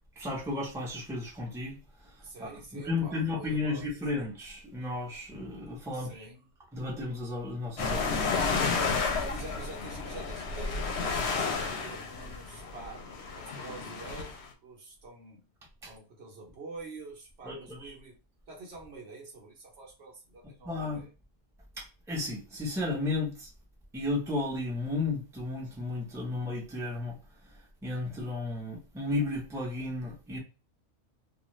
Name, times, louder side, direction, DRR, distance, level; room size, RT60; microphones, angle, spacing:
voice 1, 0.2-1.8 2.4-6.2 6.7-8.5 15.8-15.9 17.4-17.9 20.6-21.1 21.8-23.5 23.9-27.2 27.8-30.4, left 2 dB, 5° right, 0.7 m, -33 dB
voice 2, 2.2-3.8 5.9-6.5 9.2-10.9 11.3-13.1 13.4-15.5 15.8-18.2 18.5-21.1, right 3 dB, 60° right, 1.0 m, -47 dB
sound 1, 7.8-14.4, left 4 dB, 65° left, 0.8 m, -31 dB
2.4 x 2.3 x 3.0 m
omnidirectional pair, 1.3 m